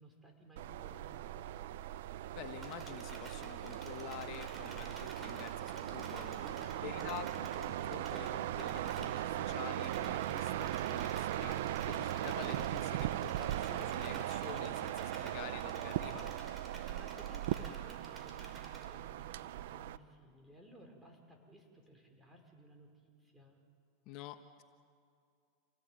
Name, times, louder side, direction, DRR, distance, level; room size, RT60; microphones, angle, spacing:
voice 1, 0.0-1.5 6.4-7.3 16.7-23.6, right 1 dB, 10° right, 2 dB, 5.5 m, -57 dB
sound 1, 0.6-20.0, right 13 dB, 75° right, 0.7 m, -39 dB
voice 2, 2.4-6.4 6.8-11.6 11.8-16.4 24.1-24.6, left 12 dB, 55° left, 8 dB, 1.3 m, -48 dB
sound 2, 2.6-8.3 8.6-9.1 9.4-9.5 9.7-18.8, right 2 dB, 25° right, 5.9 m, -53 dB
28.0 x 18.0 x 9.1 m, 2.3 s
hypercardioid pair, 105°, 0 cm